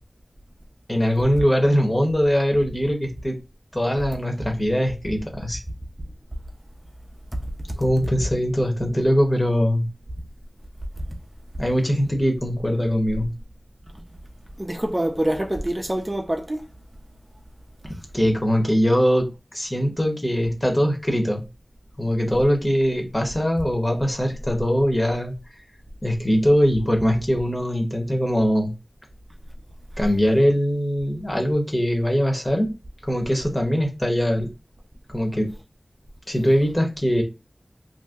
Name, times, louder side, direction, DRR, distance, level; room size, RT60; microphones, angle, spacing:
voice 1, 0.9-3.4 3.7-5.6 7.8-9.9 11.6-13.3 18.1-19.3 19.5-21.4 22.0-25.3 26.0-28.7 30.0-32.7 33.1-34.5 35.1-35.5 36.3-37.2, equal, 25° left, 1.0 m, -21 dB
voice 2, 14.6-16.6, right 1 dB, 30° right, 0.5 m, -25 dB
2.7 x 2.1 x 3.4 m
wide cardioid pair, 40°, 0 cm